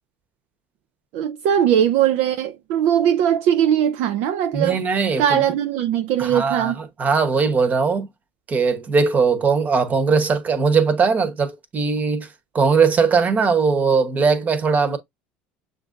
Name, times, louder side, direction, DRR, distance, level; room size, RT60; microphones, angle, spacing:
voice 1, 1.1-4.8 5.2-6.8, right 10 dB, 65° right, 0.4 m, -20 dB
voice 2, 4.5-5.4 6.2-6.7 7.0-8.1 8.5-12.3 12.5-15.0, right 5 dB, 35° right, 1.0 m, -19 dB
6.7 x 2.6 x 2.5 m
hypercardioid pair, 80°, 5 cm